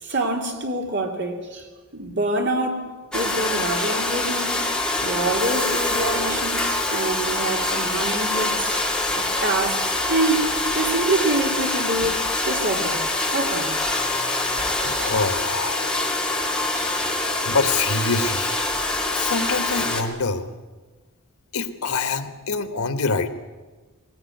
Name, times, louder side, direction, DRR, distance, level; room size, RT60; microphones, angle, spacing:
voice 1, 0.0-1.6 1.9-4.7 5.0-8.8 9.2-13.0 13.3-13.7 14.2-14.3 14.7-15.1 16.7-17.2, right 2 dB, 55° right, 2 dB, 3.0 m, -26 dB
Domestic sounds home sounds, 3.1-20.0, left 2 dB, 5° left, 2.2 m, -25 dB
voice 2, 14.8-15.9 17.4-18.6 19.1-20.5 21.5-23.3, left 4 dB, 90° left, 10 dB, 1.5 m, -25 dB
21.0 x 18.0 x 9.3 m, 1.3 s
head